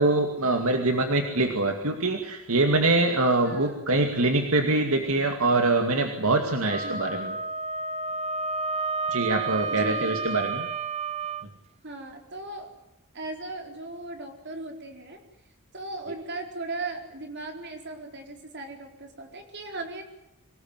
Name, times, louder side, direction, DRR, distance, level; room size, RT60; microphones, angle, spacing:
voice 1, 0.0-7.3 9.1-10.7, right 2 dB, 70° right, 5 dB, 2.3 m, -24 dB
voice 2, 3.4-3.9 6.8-7.2 9.6-10.4 11.8-12.7 13.1-15.2 15.7-20.0, right 2 dB, 50° right, 4 dB, 4.5 m, -38 dB
Wind instrument woodwind instrument, 6.7-11.4, right 4 dB, 30° right, 0.9 m, -31 dB
25.5 x 18.5 x 9.5 m, 0.88 s
head